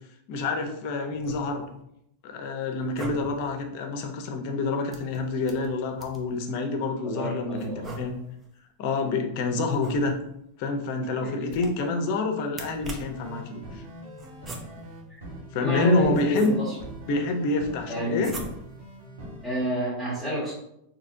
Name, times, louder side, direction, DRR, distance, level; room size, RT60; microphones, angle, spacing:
voice 1, 0.3-1.7 2.2-8.1 8.8-10.2 10.6-13.8 15.5-16.6 17.1-18.3, left 3 dB, 55° left, 4 dB, 0.7 m, -27 dB
sound 1, 1.1-1.8 2.8-3.5 4.9-6.4 7.6-8.5 9.7-10.5 11.4-12.0 12.5-13.3 14.2-15.0 15.7-16.9 18.2-18.9, right 2 dB, 20° right, 0.7 m, -42 dB
voice 2, 7.0-7.9 11.2-11.6 15.1-15.2 15.6-16.7 17.9-18.3 19.4-20.5, equal, 5° left, -9 dB, 1.3 m, -29 dB
sound 2, 12.8-19.6, equal, 85° right, 1.5 m, -43 dB
4.0 x 2.8 x 2.6 m, 0.77 s
hypercardioid pair, 120°, 0 cm